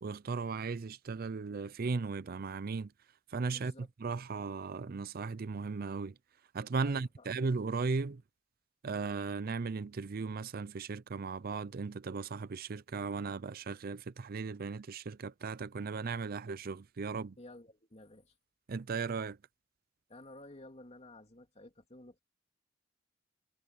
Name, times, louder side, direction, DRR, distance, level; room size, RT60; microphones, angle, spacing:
voice 1, 0.0-2.9 3.3-3.7 4.0-6.1 6.5-8.2 8.8-17.3 18.7-19.4, right 4 dB, 50° right, 0.5 m, -36 dB
voice 2, 3.5-3.9 6.8-7.4 17.4-18.3 20.1-22.2, left 1 dB, 35° left, 2.8 m, -53 dB
head